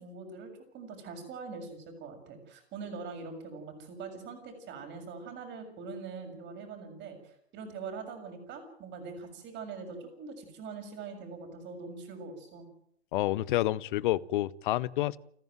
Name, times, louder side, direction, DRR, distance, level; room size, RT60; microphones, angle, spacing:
voice 1, 0.0-12.7, right 4 dB, 35° right, 6.9 m, -43 dB
voice 2, 13.1-15.2, left 15 dB, 50° left, 0.9 m, -29 dB
29.5 x 10.5 x 9.1 m
figure-of-eight pair, 100°, 32 cm